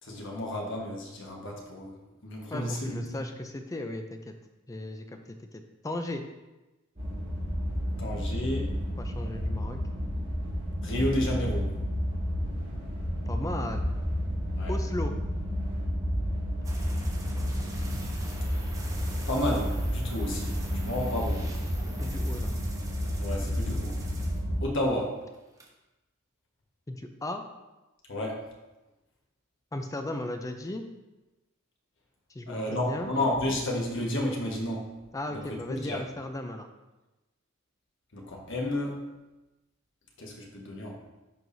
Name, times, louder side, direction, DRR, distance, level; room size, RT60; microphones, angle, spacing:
voice 1, 0.0-3.2 8.0-8.7 10.8-11.7 14.5-14.7 19.1-21.5 23.2-24.0 24.6-25.2 28.1-28.4 32.5-34.9 35.3-36.0 38.1-39.0 40.2-41.0, left 1 dB, 60° left, -1 dB, 1.4 m, -31 dB
voice 2, 2.5-4.3 4.7-5.2 5.5-6.2 9.0-9.8 13.3-14.0 14.7-15.1 22.0-22.6 26.9-27.4 29.7-30.8 32.3-33.1 35.1-36.7, left 1 dB, 15° left, 6 dB, 0.4 m, -36 dB
sound 1, 7.0-24.6, equal, 45° right, 2.2 m, -31 dB
sound 2, 16.6-24.9 25.2-25.7, right 2 dB, 15° right, 0.9 m, -44 dB
10.5 x 4.7 x 2.7 m, 1.1 s
head